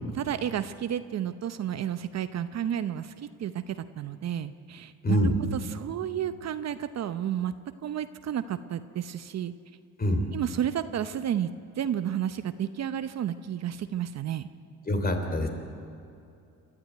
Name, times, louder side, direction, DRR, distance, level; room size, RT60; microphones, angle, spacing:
voice 1, 0.1-5.2 5.5-7.5 7.8-9.5 10.3-11.5 11.8-14.5, right 10 dB, 50° right, 11 dB, 0.8 m, -31 dB
voice 2, 5.0-5.3 10.0-10.2 14.9-15.5, left 1 dB, 25° left, 5 dB, 3.3 m, -25 dB
29.0 x 13.0 x 9.5 m, 2.6 s
cardioid pair, 125°, 33 cm